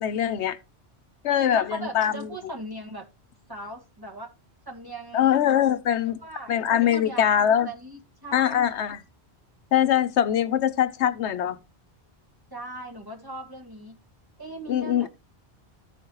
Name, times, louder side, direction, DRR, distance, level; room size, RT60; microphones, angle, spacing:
voice 1, 0.0-0.6 1.2-2.3 5.1-6.2 6.5-7.7 8.3-9.0 9.7-11.6 14.7-15.1, left 10 dB, 80° left, 0.9 m, -22 dB
voice 2, 1.4-3.1 3.5-4.3 4.7-5.3 6.2-8.8 12.5-14.0 14.4-15.1, right 2 dB, 20° right, 1.7 m, -39 dB
14.5 x 5.0 x 2.9 m
omnidirectional pair, 1.1 m